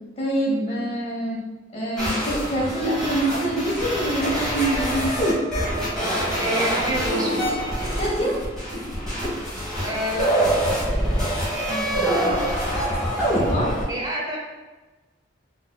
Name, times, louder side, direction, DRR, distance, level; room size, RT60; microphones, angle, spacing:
voice 1, 0.2-1.4 1.7-5.1 7.9-8.4 11.7-12.3 13.4-13.8, right 1 dB, 35° left, -5 dB, 1.0 m, -25 dB
sound 1, 2.0-13.9, right 1 dB, 5° left, 1.0 m, -25 dB
voice 2, 6.4-7.4 9.8-10.3 13.9-14.4, equal, 20° right, -2 dB, 0.6 m, -27 dB
4.0 x 2.6 x 2.2 m, 1.2 s
head